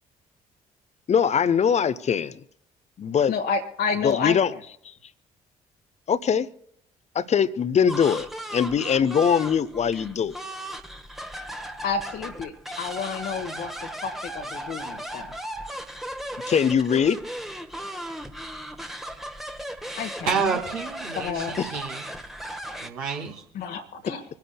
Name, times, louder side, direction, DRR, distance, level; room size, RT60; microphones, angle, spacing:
voice 1, 1.1-2.4 3.0-3.3 4.0-4.5 4.8-4.9 6.1-6.5 7.1-10.4 16.5-17.2 21.6-21.8, left 7 dB, 35° left, 0.8 m, -22 dB
voice 2, 3.3-4.4 11.8-13.7 14.0-15.3 20.0-20.5 21.1-21.6 23.5-24.2, left 5 dB, 55° left, 1.4 m, -30 dB
sound 1, 7.9-22.9, right 1 dB, ahead, 1.2 m, -36 dB
voice 3, 20.3-22.0 22.8-23.4, right 6 dB, 75° right, 2.2 m, -29 dB
26.0 x 10.5 x 2.2 m
figure-of-eight pair, 45°, 19 cm